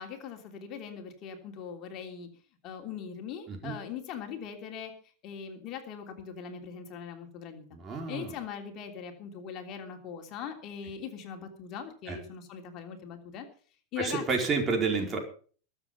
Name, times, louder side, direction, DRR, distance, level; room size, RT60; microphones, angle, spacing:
voice 1, 0.0-2.3 2.6-4.9 5.2-7.6 8.1-13.5 13.9-14.2, left 7 dB, 40° left, 4 dB, 3.2 m, -40 dB
voice 2, 7.7-8.3 12.1-12.2 14.0-15.2, right 4 dB, 25° right, 2 dB, 4.6 m, -30 dB
22.0 x 7.8 x 5.5 m, 0.42 s
figure-of-eight pair, 95°, 0 cm